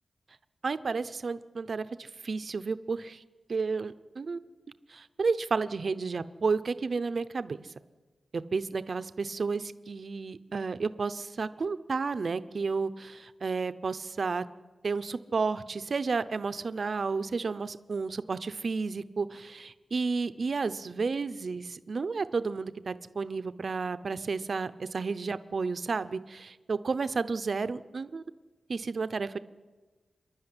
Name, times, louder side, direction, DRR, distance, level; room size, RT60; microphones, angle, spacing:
voice 1, 0.6-3.2 3.5-4.4 4.9-7.7 8.3-14.4 14.8-28.2 28.7-29.4, right 4 dB, 50° right, 12 dB, 0.7 m, -32 dB
26.5 x 11.5 x 9.8 m, 1.3 s
wide cardioid pair, 145°, 0 cm